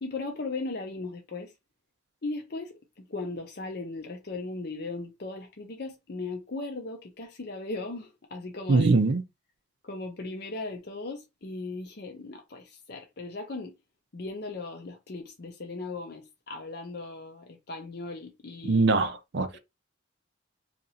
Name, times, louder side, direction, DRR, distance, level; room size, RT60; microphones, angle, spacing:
voice 1, 0.0-1.5 2.2-9.1 9.8-13.8 14.1-18.9 19.5-19.6, left 3 dB, 50° left, 0.6 m, -37 dB
voice 2, 8.7-9.2 18.6-19.6, right 3 dB, 55° right, 0.5 m, -22 dB
2.8 x 2.5 x 4.1 m
head